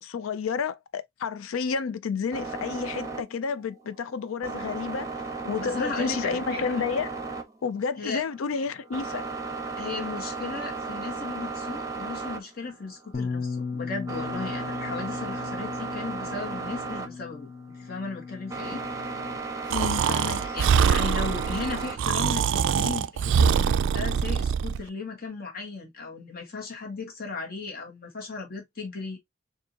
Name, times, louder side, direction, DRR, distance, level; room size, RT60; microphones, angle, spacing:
voice 1, 0.0-7.2 7.6-9.2 19.7-20.6, left 5 dB, 85° left, 0.4 m, -31 dB
sound 1, 2.3-22.0, right 4 dB, 15° right, 0.8 m, -36 dB
voice 2, 5.6-6.6 8.0-8.2 9.7-17.5 17.7-18.8 20.5-29.2, left 4 dB, 50° left, 1.6 m, -36 dB
Bass guitar, 13.1-19.4, left 4 dB, 35° left, 0.7 m, -36 dB
Breathing, 19.7-24.8, right 7 dB, 65° right, 0.3 m, -24 dB
4.6 x 2.7 x 2.8 m
head